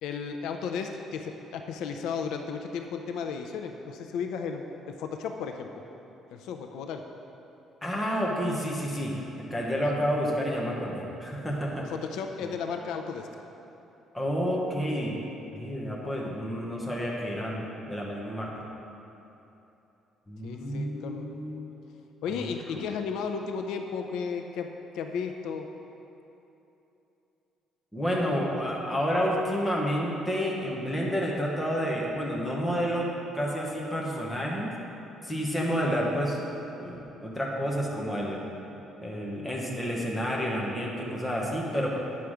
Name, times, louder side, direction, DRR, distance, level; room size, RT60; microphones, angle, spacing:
voice 1, 0.0-5.8 6.3-7.0 9.8-9.9 11.9-13.3 20.4-21.3 22.2-24.7 24.9-25.7, left 6 dB, 80° left, 5 dB, 0.5 m, -34 dB
voice 2, 7.8-9.2 9.5-11.9 14.1-15.2 15.5-18.5 20.3-21.6 22.4-22.5 27.9-33.1 33.3-34.7 35.2-36.4 36.8-38.4 39.0-42.0, equal, 5° left, -3 dB, 1.1 m, -30 dB
9.3 x 5.8 x 4.9 m, 3.0 s
cardioid pair, 175°, 0 cm